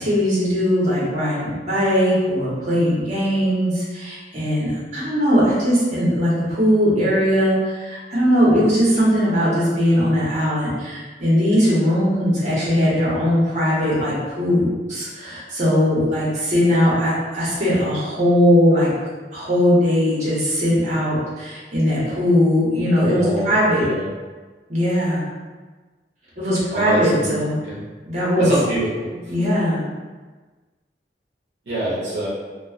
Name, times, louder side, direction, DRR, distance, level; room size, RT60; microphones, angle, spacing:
voice 1, 0.0-18.9 19.3-23.9 24.7-25.2 26.4-27.6 28.1-28.5 29.3-29.8, equal, 40° right, -8 dB, 0.9 m, -19 dB
voice 2, 23.0-23.5 23.8-24.1 26.7-27.3 27.6-27.8 28.4-29.3 31.7-32.3, right 1 dB, 75° right, -7 dB, 0.6 m, -25 dB
2.3 x 2.3 x 2.3 m, 1.3 s
head